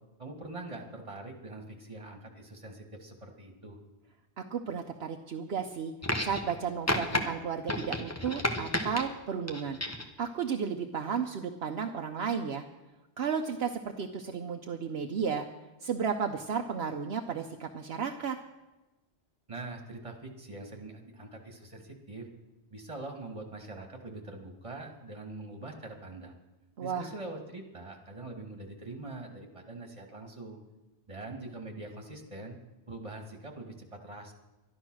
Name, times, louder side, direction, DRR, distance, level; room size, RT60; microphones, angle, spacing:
voice 1, 0.2-3.8 19.5-22.3 22.7-26.3 26.8-30.6 31.1-32.6 32.9-34.3, right 2 dB, 30° right, 3 dB, 2.0 m, -43 dB
voice 2, 4.4-5.9 6.2-9.8 10.2-12.6 13.2-15.4 15.8-18.4 26.8-27.1, right 6 dB, 65° right, 4 dB, 1.0 m, -33 dB
sound 1, 6.0-6.6 6.9-7.2 7.7-9.0 9.5-10.1 11.2-11.3, left 1 dB, 15° left, 1.0 m, -31 dB
12.0 x 11.5 x 6.2 m, 1.1 s
omnidirectional pair, 1.2 m